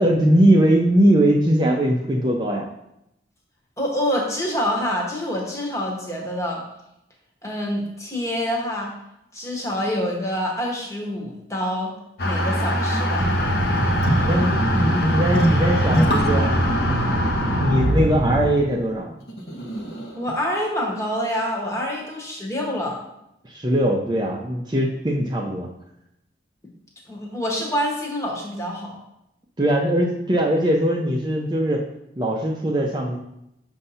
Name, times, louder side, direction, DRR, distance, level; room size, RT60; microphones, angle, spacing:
voice 1, 0.0-2.7 14.2-16.5 17.5-19.1 23.4-25.7 29.6-31.8 32.2-33.2, right 1 dB, 25° right, -1 dB, 0.5 m, -20 dB
voice 2, 3.8-6.6 7.4-8.9 9.3-11.9 12.2-13.4 20.2-23.0 27.1-29.0, equal, 15° left, -1 dB, 1.0 m, -26 dB
sound 1, 12.2-20.3, equal, 55° left, 0.8 m, -23 dB
sound 2, 13.2-18.5, right 1 dB, 70° right, 0.7 m, -25 dB
6.7 x 2.7 x 5.5 m, 0.82 s
head